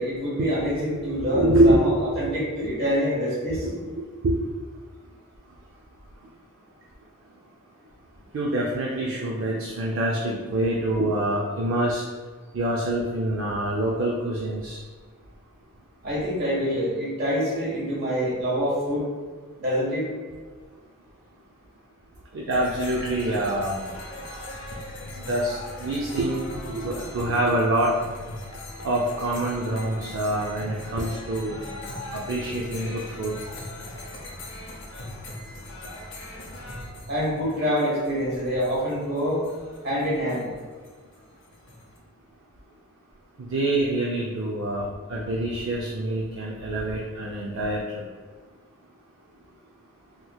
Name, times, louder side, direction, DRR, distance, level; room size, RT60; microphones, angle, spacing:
voice 1, 0.0-1.9 2.1-3.7 16.0-19.1 19.6-20.1 37.1-39.4 39.8-40.5, equal, 50° right, -6 dB, 1.3 m, -26 dB
voice 2, 1.0-2.4 3.6-4.3 8.3-12.0 12.5-14.8 22.3-23.8 25.2-27.9 28.8-31.6 32.1-33.4 43.4-44.8 45.1-47.8, right 1 dB, 65° right, -3 dB, 0.4 m, -25 dB
sound 1, 22.5-42.0, left 1 dB, 60° left, 0.6 m, -40 dB
3.6 x 2.9 x 2.3 m, 1.5 s
head